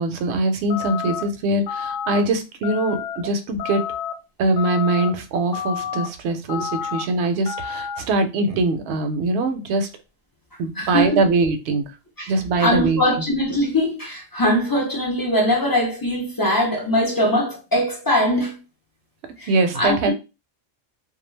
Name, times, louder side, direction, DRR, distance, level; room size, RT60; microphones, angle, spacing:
voice 1, 0.0-3.8 4.4-9.9 10.6-11.8 12.3-13.0 19.5-20.1, right 2 dB, 65° right, 0.8 m, -22 dB
sound 1, 0.7-1.2 1.7-2.2 2.6-3.2 3.6-4.1 4.6-5.1 5.5-6.1 6.5-7.0 7.5-8.0, left 8 dB, 80° left, 0.9 m, -29 dB
voice 2, 10.8-11.2 12.2-12.3 12.6-18.6 19.4-19.5 19.7-20.1, left 1 dB, 30° left, 0.4 m, -21 dB
2.3 x 2.2 x 3.1 m
omnidirectional pair, 1.3 m